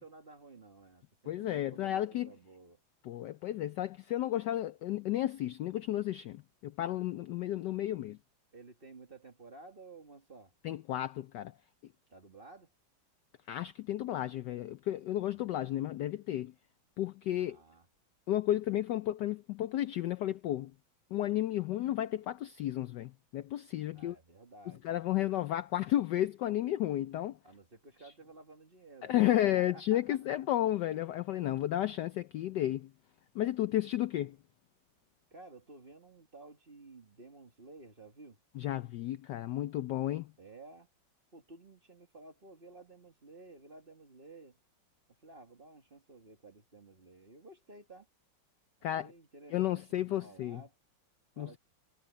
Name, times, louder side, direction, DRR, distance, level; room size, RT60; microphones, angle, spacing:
voice 1, 0.0-2.8 8.5-10.5 12.1-12.7 15.1-15.7 17.3-17.9 23.9-25.2 27.4-29.2 29.6-30.2 35.3-38.4 40.4-40.9 41.3-44.6 45.2-48.1 48.8-50.7 51.4-51.6, right 3 dB, 25° right, 2.1 m, -54 dB
voice 2, 1.3-2.3 3.1-8.2 10.6-11.5 13.5-16.5 17.0-17.6 18.3-20.7 21.1-24.2 24.8-27.4 29.0-32.9 33.3-34.4 38.6-40.3 48.8-49.1 49.5-50.6 51.4-51.6, left 13 dB, 70° left, 1.0 m, -32 dB
omnidirectional pair, 2.3 m